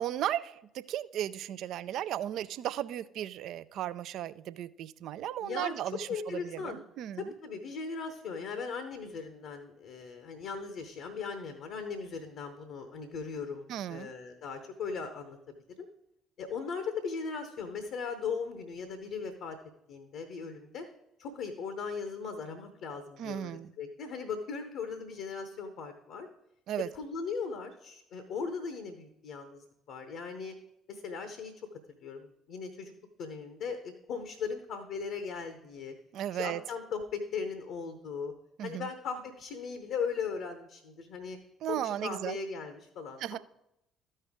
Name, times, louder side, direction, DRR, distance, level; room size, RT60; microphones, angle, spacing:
voice 1, 0.0-7.3 13.7-14.1 23.2-23.7 26.7-26.9 36.1-36.6 38.6-38.9 41.6-42.4 43.2-43.4, right 11 dB, 55° right, 16 dB, 0.3 m, -35 dB
voice 2, 5.4-5.7 6.1-6.8 7.2-15.4 15.8-15.9 16.4-19.6 19.9-20.8 21.2-26.3 26.9-30.5 30.9-31.5 32.0-32.9 33.2-35.9 36.3-38.3 38.6-41.4 41.7-43.4, left 5 dB, 60° left, 8 dB, 0.8 m, -38 dB
13.0 x 5.5 x 3.6 m, 0.82 s
figure-of-eight pair, 50°, 0 cm